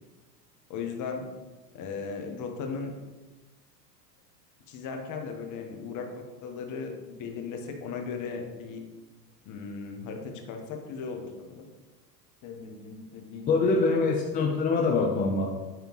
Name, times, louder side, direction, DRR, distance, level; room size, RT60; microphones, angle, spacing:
voice 1, 0.7-1.2 1.7-2.9 4.7-8.8 9.4-11.7 12.4-13.7, left 5 dB, 35° left, 3 dB, 1.2 m, -37 dB
voice 2, 13.5-15.5, left 3 dB, 20° left, 0 dB, 0.5 m, -24 dB
9.3 x 3.5 x 3.1 m, 1.2 s
hypercardioid pair, 95°, 50 cm